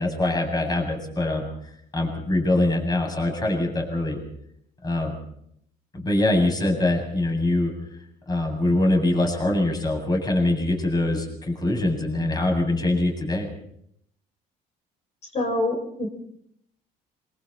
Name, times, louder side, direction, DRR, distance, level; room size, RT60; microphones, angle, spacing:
voice 1, 0.0-1.5 1.9-4.2 4.8-5.2 5.9-7.7 8.3-13.5, left 2 dB, 25° left, 3 dB, 7.9 m, -23 dB
voice 2, 15.3-16.1, left 1 dB, 40° left, 0 dB, 7.2 m, -25 dB
27.0 x 25.5 x 4.4 m, 0.71 s
cardioid pair, 110°, 17 cm